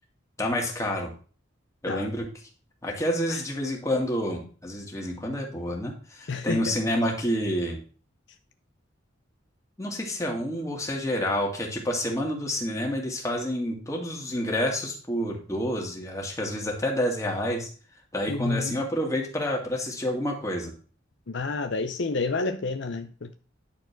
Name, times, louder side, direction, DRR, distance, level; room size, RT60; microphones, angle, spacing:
voice 1, 0.4-1.1 1.8-2.3 2.8-7.8 9.8-17.7 18.1-20.7, equal, 15° left, 2.2 m, -28 dB
voice 2, 6.3-6.7 18.3-18.8 21.3-23.3, left 3 dB, 65° left, 0.6 m, -30 dB
10.5 x 4.6 x 5.9 m
head